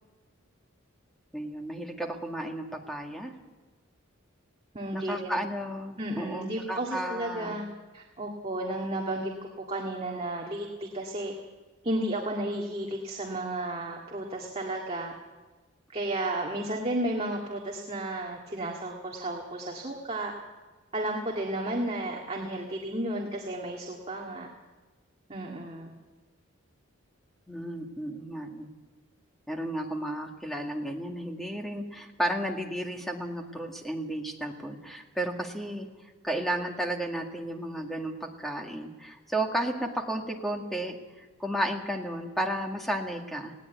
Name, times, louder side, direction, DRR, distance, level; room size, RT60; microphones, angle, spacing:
voice 1, 1.3-3.3 4.9-7.6 27.5-28.7 29.5-35.9 36.2-43.5, right 1 dB, ahead, 2 dB, 1.9 m, -33 dB
voice 2, 4.7-5.4 6.0-7.7 7.9-9.3 9.7-11.3 11.8-15.1 15.9-20.3 20.9-24.5 25.3-25.9, right 1 dB, 30° right, -1 dB, 1.9 m, -33 dB
20.0 x 17.0 x 8.2 m, 1.3 s
head